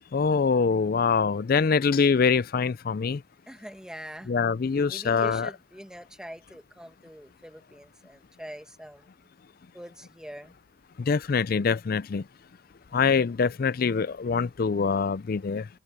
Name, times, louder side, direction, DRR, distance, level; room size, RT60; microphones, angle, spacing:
voice 1, 0.1-3.2 4.3-5.5 11.0-12.2 12.9-15.7, left 5 dB, 45° left, 0.4 m, -24 dB
voice 2, 3.5-4.4 4.9-9.1 9.7-10.5 12.8-13.0, equal, 5° right, 1.4 m, -43 dB
head